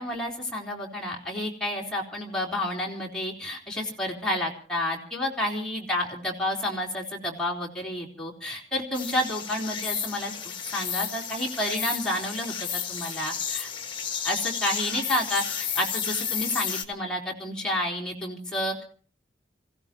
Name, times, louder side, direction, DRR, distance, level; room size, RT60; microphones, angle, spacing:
voice 1, 0.0-10.3 10.7-13.7 14.2-18.8, left 1 dB, 5° left, -2 dB, 3.8 m, -30 dB
sound 1, 8.9-16.8, left 8 dB, 25° left, 1.5 m, -32 dB
27.5 x 16.0 x 3.0 m, 0.43 s
head